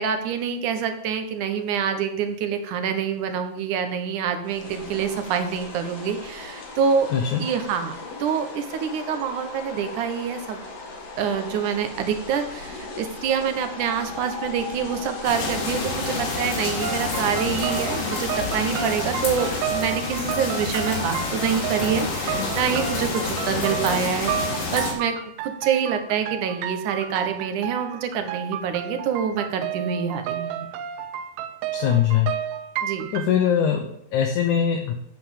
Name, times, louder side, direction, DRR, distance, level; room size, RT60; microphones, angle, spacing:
voice 1, 0.0-7.1 7.4-7.9 8.2-10.6 11.2-25.1 25.4-30.7 32.8-33.1, right 7 dB, 65° right, 7 dB, 2.4 m, -26 dB
sound 1, 4.4-19.6, left 3 dB, 45° left, 2.7 m, -38 dB
voice 2, 7.1-7.4 31.7-32.3 33.1-34.9, left 9 dB, 65° left, 3 dB, 2.2 m, -22 dB
sound 2, 15.2-24.9, left 4 dB, 90° left, 4.9 m, -28 dB
sound 3, 16.8-33.3, right 9 dB, 90° right, 2.7 m, -32 dB
9.3 x 8.5 x 7.2 m, 0.72 s
omnidirectional pair, 4.3 m